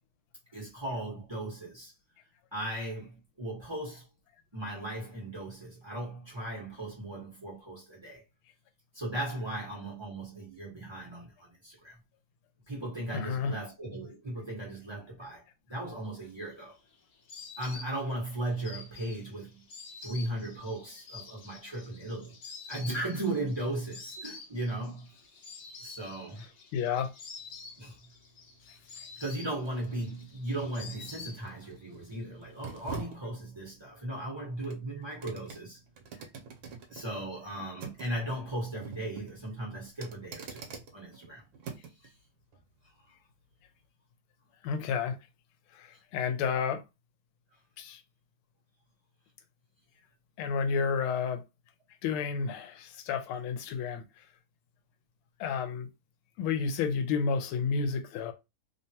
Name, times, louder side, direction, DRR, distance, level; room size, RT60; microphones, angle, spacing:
voice 1, 0.5-1.9 2.5-4.1 4.5-8.2 8.9-12.0 12.7-15.4 15.7-16.7 17.6-19.6 20.0-22.4 22.7-25.2 25.8-26.5 27.8-28.0 29.2-35.8 36.9-40.7 40.9-41.4, right 1 dB, 35° right, 0.4 m, -37 dB
voice 2, 13.1-13.6 26.7-27.1 44.6-45.2 45.8-46.8 47.8-48.0 50.4-51.4 52.0-54.0 55.4-55.9 56.4-58.3, left 6 dB, 90° left, 1.5 m, -31 dB
Insect, 16.1-31.8 32.1-32.9, left 4 dB, 60° left, 1.0 m, -48 dB
sound 1, 27.4-42.1 42.5-42.7, right 5 dB, 75° right, 1.3 m, -47 dB
3.5 x 2.2 x 2.7 m
omnidirectional pair, 2.3 m